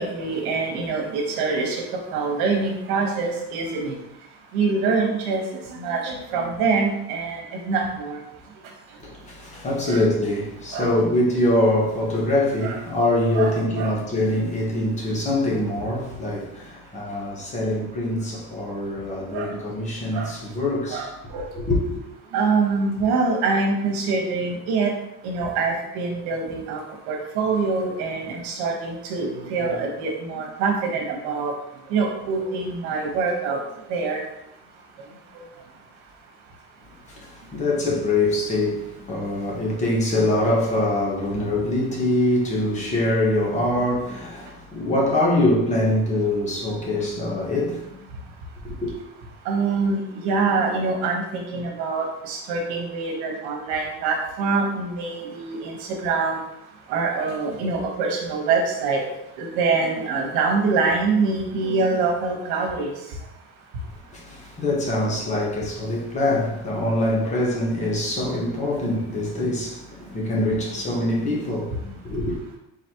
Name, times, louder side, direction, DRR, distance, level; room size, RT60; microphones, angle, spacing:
voice 1, 0.0-3.9 4.5-5.4 5.7-8.2 9.9-10.0 10.7-10.9 12.6-12.8 13.3-14.0 19.3-19.5 20.1-20.3 20.9-21.5 22.3-24.9 25.2-26.8 27.1-31.5 31.9-33.6 33.9-34.2 35.3-35.4 49.4-50.0 50.2-56.4 56.9-59.0 59.4-62.9, right 4 dB, 80° right, 1.3 m, -24 dB
voice 2, 9.0-21.1 21.5-22.0 37.1-47.9 48.6-48.9 64.1-72.4, left 1 dB, 25° left, 1.1 m, -24 dB
4.1 x 4.0 x 2.9 m
cardioid pair, 150°, 30 cm